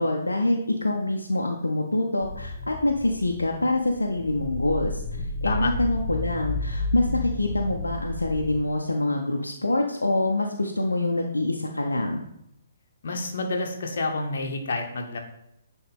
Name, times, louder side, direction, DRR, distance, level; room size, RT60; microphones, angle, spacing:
voice 1, 0.0-5.0 5.4-12.2, left 2 dB, 75° left, 2 dB, 0.6 m, -25 dB
sound 1, 2.2-8.6, left 2 dB, 30° left, 0.6 m, -32 dB
voice 2, 13.0-15.2, left 3 dB, 55° left, 3 dB, 1.0 m, -28 dB
9.3 x 3.1 x 3.6 m, 0.79 s
figure-of-eight pair, 130°, 0 cm